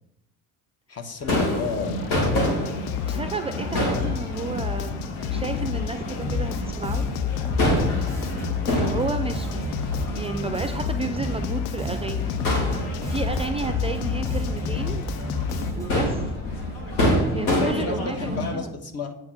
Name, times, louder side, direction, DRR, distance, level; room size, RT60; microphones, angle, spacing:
voice 1, 0.9-2.1 17.0-19.2, left 5 dB, 35° left, 7 dB, 1.3 m, -32 dB
Crowd / Fireworks, 1.2-18.5, left 1 dB, 70° left, 2.4 m, -28 dB
sound 1, 1.4-15.7, left 11 dB, 55° left, 0.5 m, -31 dB
voice 2, 3.0-5.0 5.3-7.1 8.7-9.7 10.1-12.3 12.7-15.0 15.7-16.3 17.3-18.7, right 4 dB, 15° right, 8 dB, 0.4 m, -32 dB
Bass guitar, 6.2-6.6 6.8-11.5 11.8-16.1, right 1 dB, 5° left, 2.1 m, -33 dB
8.5 x 4.6 x 5.8 m, 0.81 s
figure-of-eight pair, 55°, 45 cm